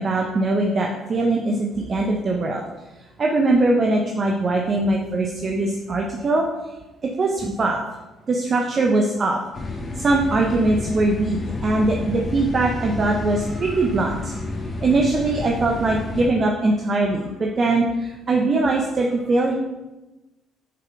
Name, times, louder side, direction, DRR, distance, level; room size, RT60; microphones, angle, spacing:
voice 1, 0.0-2.6 3.2-6.5 7.2-7.8 8.3-9.4 9.9-14.4 14.8-19.5, right 2 dB, 40° right, 1 dB, 1.3 m, -21 dB
sound 1, 9.5-16.3, left 2 dB, 35° left, 2.4 m, -30 dB
10.0 x 6.7 x 4.8 m, 1.1 s
hypercardioid pair, 50°, 0 cm